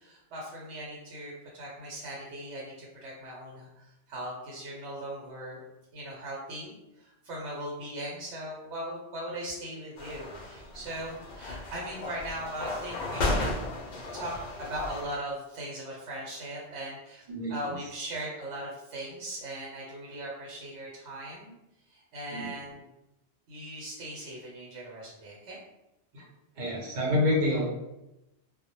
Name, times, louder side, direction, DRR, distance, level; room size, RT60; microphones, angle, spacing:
voice 1, 0.0-5.6 5.9-13.5 14.1-17.2 17.5-21.6 21.9-22.8 23.5-25.6, right 1 dB, 80° right, -4 dB, 1.0 m, -39 dB
sound 1, 10.0-15.0, left 2 dB, 55° left, 0.5 m, -34 dB
voice 2, 17.3-17.8 22.3-22.5 26.1-26.2 26.6-27.6, left 1 dB, 50° right, -3 dB, 0.7 m, -28 dB
2.1 x 2.0 x 2.9 m, 0.93 s
omnidirectional pair, 1.2 m